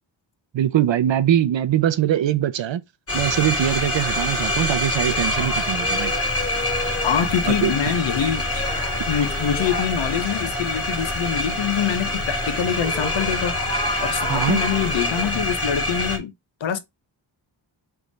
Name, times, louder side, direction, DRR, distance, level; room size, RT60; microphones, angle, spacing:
voice 1, 0.5-2.8 3.1-6.1 7.5-7.9 14.3-14.6, right 11 dB, 65° right, 0.6 m, -22 dB
sound 1, 3.1-16.2, left 1 dB, 30° left, 1.7 m, -25 dB
sound 2, 4.9-7.3 8.3-9.9 12.4-15.4, equal, 10° left, 1.0 m, -33 dB
voice 2, 7.0-8.6 9.1-13.6 14.0-16.3 16.6-16.8, left 8 dB, 70° left, 0.8 m, -24 dB
3.5 x 3.4 x 3.9 m
wide cardioid pair, 140°, 47 cm